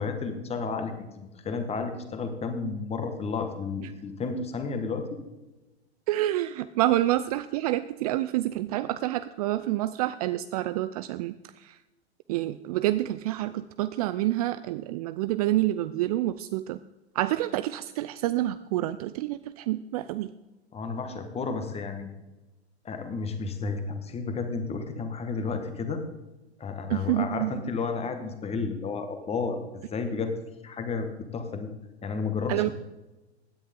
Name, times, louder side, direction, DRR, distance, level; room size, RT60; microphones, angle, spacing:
voice 1, 0.0-5.2 20.7-22.1 22.8-26.0 26.6-30.3 30.6-31.1 31.3-31.7 32.0-32.7, left 4 dB, 20° left, 7 dB, 1.6 m, -32 dB
voice 2, 6.1-11.8 12.3-16.8 17.1-20.3 26.9-27.6 32.5-32.7, right 15 dB, 35° right, 13 dB, 0.4 m, -28 dB
16.5 x 10.0 x 3.7 m, 1.1 s
figure-of-eight pair, 100°, 33 cm